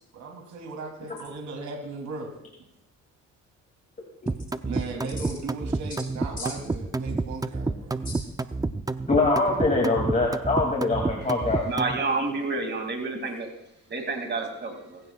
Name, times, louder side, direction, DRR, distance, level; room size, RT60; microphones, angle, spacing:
voice 1, 0.1-2.3 4.6-8.1, right 3 dB, 65° right, 1 dB, 3.3 m, -37 dB
sound 1, 4.3-12.0, right 3 dB, 10° right, 0.6 m, -29 dB
voice 2, 9.1-11.6, left 2 dB, 25° left, -2 dB, 2.8 m, -23 dB
voice 3, 11.7-13.5 13.9-15.0, right 3 dB, 35° right, 4 dB, 2.8 m, -29 dB
22.0 x 16.0 x 2.5 m, 0.81 s
cardioid pair, 90°, 30 cm